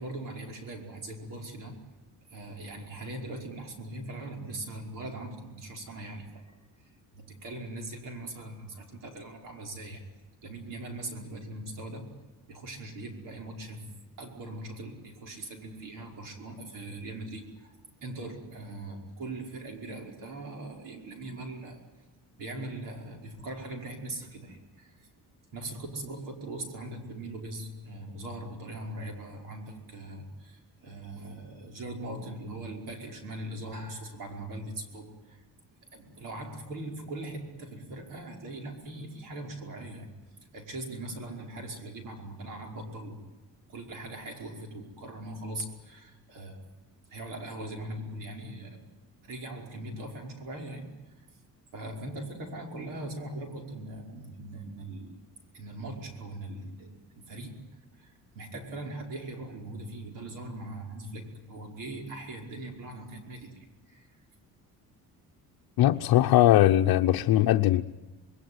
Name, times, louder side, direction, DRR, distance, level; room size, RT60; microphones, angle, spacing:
voice 1, 0.0-1.8 2.3-6.6 7.1-10.0 10.4-12.2 12.5-17.8 18.0-21.8 22.4-25.0 25.5-35.4 35.9-40.1 40.5-43.3 43.7-46.6 47.1-48.9 49.2-51.0 51.7-55.2 55.5-63.6 63.9-64.1, right 1 dB, 60° right, 5.3 m, -40 dB
voice 2, 65.8-67.8, left 13 dB, 75° left, 0.9 m, -20 dB
27.0 x 21.0 x 9.6 m
cardioid pair, 180°, 36 cm